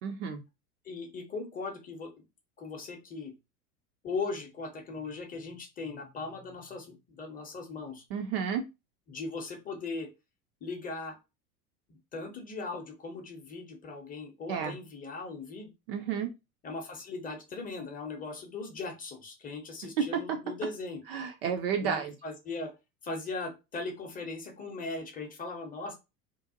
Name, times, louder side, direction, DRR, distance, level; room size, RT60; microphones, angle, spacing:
voice 1, 0.0-0.4 8.1-8.6 14.5-14.8 15.9-16.3 20.0-20.4 21.1-22.1, right 7 dB, 40° right, 6 dB, 0.4 m, -31 dB
voice 2, 0.8-2.1 2.6-3.3 4.0-8.0 9.1-10.1 10.6-11.2 11.9-15.7 16.6-21.0 21.8-22.7 23.0-25.9, left 3 dB, 20° left, 3 dB, 0.7 m, -39 dB
2.5 x 2.1 x 2.7 m, 0.25 s
figure-of-eight pair, 80°, 46 cm